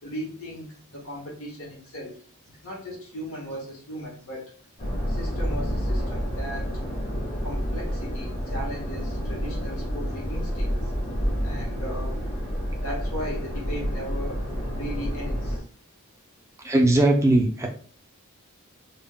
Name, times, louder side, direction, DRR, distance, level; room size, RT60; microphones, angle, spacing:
voice 1, 0.0-2.1 2.6-4.5 5.1-6.7 7.4-10.7 11.4-12.2 12.8-14.4 14.7-15.6, equal, 75° left, -2 dB, 0.9 m, -37 dB
sound 1, 4.8-15.6, equal, 35° left, 0.6 m, -29 dB
voice 2, 16.6-17.7, right 1 dB, 15° right, 1 dB, 0.3 m, -19 dB
2.2 x 2.0 x 3.5 m, 0.43 s
head